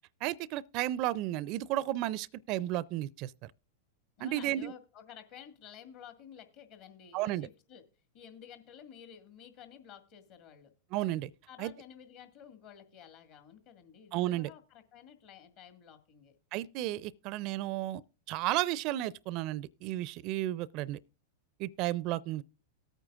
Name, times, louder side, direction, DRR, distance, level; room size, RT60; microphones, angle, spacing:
voice 1, 0.2-3.5 4.2-4.7 7.1-7.5 10.9-11.3 11.6-11.7 14.1-14.5 16.5-18.0 18.3-21.0 21.6-22.4, right 15 dB, 50° right, 0.4 m, -33 dB
voice 2, 4.2-7.8 8.1-10.7 11.5-16.4, left 8 dB, 55° left, 1.8 m, -52 dB
18.5 x 9.0 x 2.4 m
hypercardioid pair, 110°, 0 cm